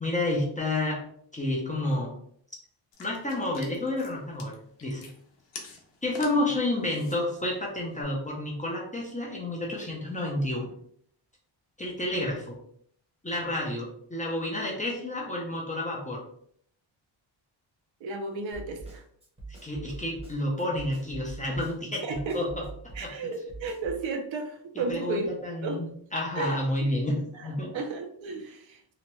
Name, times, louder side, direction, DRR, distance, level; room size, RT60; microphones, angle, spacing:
voice 1, 0.0-1.0 1.3-2.1 3.0-4.5 4.8-5.1 6.0-10.7 11.8-12.6 13.2-16.2 19.6-22.6 23.0-23.3 24.7-27.7, left 1 dB, 15° left, -2 dB, 0.4 m, -30 dB
sound 1, 2.9-8.0, left 4 dB, 65° left, 0.7 m, -48 dB
voice 2, 18.0-19.0 22.0-22.4 23.0-25.3 25.6-25.9 26.4-26.6 27.3-27.5 27.7-28.8, right 3 dB, 75° right, 5 dB, 0.6 m, -33 dB
Snare drum, 18.5-24.0, right 3 dB, 15° right, 0.7 m, -43 dB
2.9 x 2.1 x 2.9 m, 0.65 s
wide cardioid pair, 170°, 47 cm